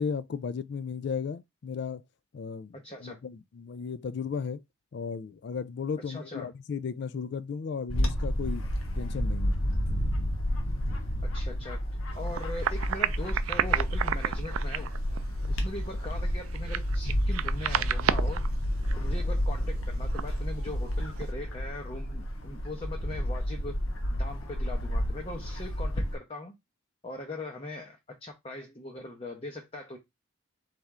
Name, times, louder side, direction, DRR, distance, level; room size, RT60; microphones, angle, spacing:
voice 1, 0.0-2.0 2.3-2.7 3.0-4.6 4.9-8.7 9.0-9.6, left 6 dB, 55° left, 0.3 m, -35 dB
voice 2, 2.7-3.2 6.0-6.5 11.2-11.8 12.1-14.9 15.5-18.5 18.9-23.8 24.1-26.5 27.0-30.0, left 2 dB, 30° left, 0.7 m, -40 dB
Bird / Wind, 7.9-26.2, equal, 85° left, 1.1 m, -30 dB
sound 1, 12.1-18.5 18.8-19.1 19.4-19.5 19.8-19.9 20.1-20.4 21.1-21.3, right 9 dB, 85° right, 0.4 m, -32 dB
4.2 x 3.4 x 3.6 m
head